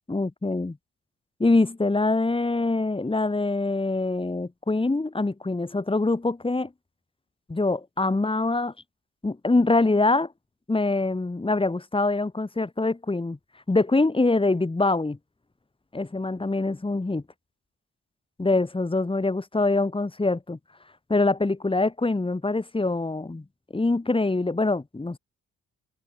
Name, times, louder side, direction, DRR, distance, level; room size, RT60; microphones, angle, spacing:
voice 1, 0.1-0.8 1.4-6.7 7.5-8.7 9.2-10.3 10.7-13.4 13.7-15.2 15.9-17.2 18.4-20.6 21.1-23.4 23.7-25.2, left 2 dB, 15° left, 7.5 m, -24 dB
cardioid pair, 90°, 30 cm